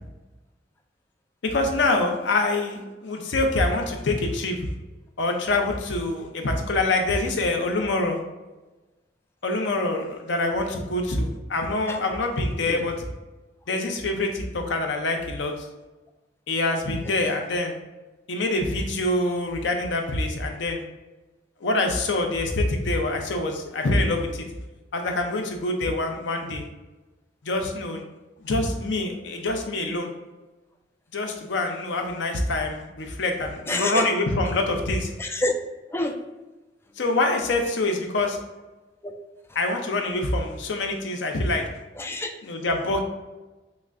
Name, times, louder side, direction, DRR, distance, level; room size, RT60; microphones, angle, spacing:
voice 1, 1.4-4.7 5.2-8.2 9.4-12.9 13.7-15.7 16.5-17.7 18.3-20.8 21.6-24.5 24.9-26.6 27.4-28.0 28.4-30.1 31.1-35.1 37.0-38.4 39.6-41.6 42.4-43.0, left 2 dB, 80° left, 3 dB, 0.6 m, -25 dB
voice 2, 33.7-34.1 35.2-35.5 35.9-36.1 39.0-39.1 42.0-42.3, left 2 dB, 15° left, 4 dB, 0.3 m, -27 dB
5.8 x 2.1 x 2.5 m, 1.1 s
head